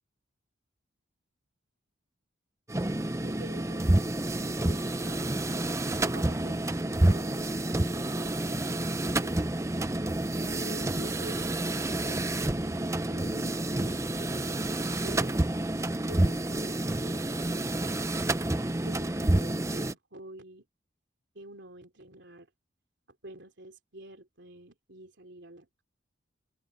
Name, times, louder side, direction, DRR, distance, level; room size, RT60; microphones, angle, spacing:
sound 1, 2.7-19.9, right 1 dB, 15° right, 0.6 m, -29 dB
voice 1, 3.2-4.1 4.4-5.3 5.9-7.4 10.3-11.6 12.0-15.4 16.0-18.0 18.8-20.7 21.4-22.5 23.2-25.8, right 1 dB, 65° right, 3.5 m, -48 dB
open air
head